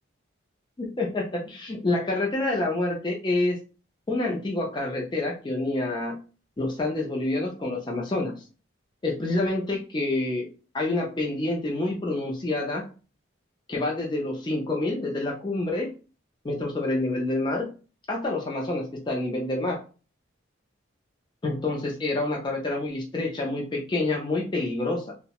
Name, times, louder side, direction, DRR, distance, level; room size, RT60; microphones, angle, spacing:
voice 1, 0.8-3.6 4.1-6.2 6.6-8.4 9.0-10.5 10.7-12.8 13.7-15.9 16.4-17.7 18.1-19.8 21.4-25.1, left 2 dB, 20° left, -1 dB, 0.4 m, -27 dB
2.6 x 2.0 x 2.9 m, 0.35 s
head